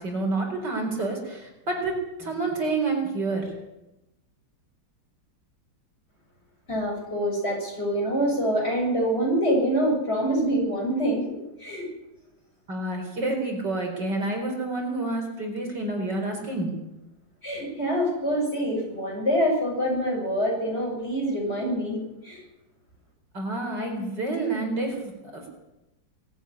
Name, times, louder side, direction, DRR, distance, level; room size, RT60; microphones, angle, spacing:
voice 1, 0.0-1.9 2.2-3.5 12.7-16.7 23.3-25.5, right 2 dB, 55° right, 2 dB, 5.1 m, -28 dB
voice 2, 6.7-11.9 17.4-22.4, equal, 30° left, -1 dB, 7.4 m, -25 dB
19.5 x 14.0 x 9.9 m, 0.95 s
omnidirectional pair, 2.2 m